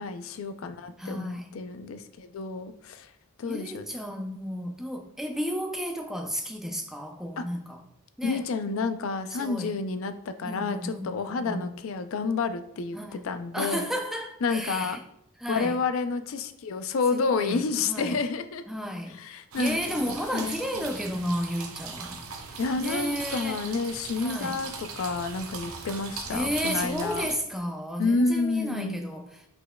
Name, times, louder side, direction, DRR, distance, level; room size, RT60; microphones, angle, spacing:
voice 1, 0.0-3.1 3.4-3.9 7.4-7.5 8.2-13.0 13.2-13.9 14.4-15.0 15.5-18.6 19.2-20.9 22.6-27.3 28.0-29.0, left 4 dB, 70° left, 9 dB, 0.4 m, -30 dB
voice 2, 1.0-1.5 3.5-7.8 8.2-8.4 9.3-9.8 10.4-11.8 12.9-13.3 13.5-15.0 15.4-15.8 17.1-18.2 18.7-19.2 19.6-23.6 24.2-24.6 26.3-29.5, equal, ahead, 3 dB, 0.4 m, -33 dB
sound 1, 19.5-27.3, right 5 dB, 80° right, 0.7 m, -39 dB
5.2 x 4.3 x 2.2 m, 0.76 s
head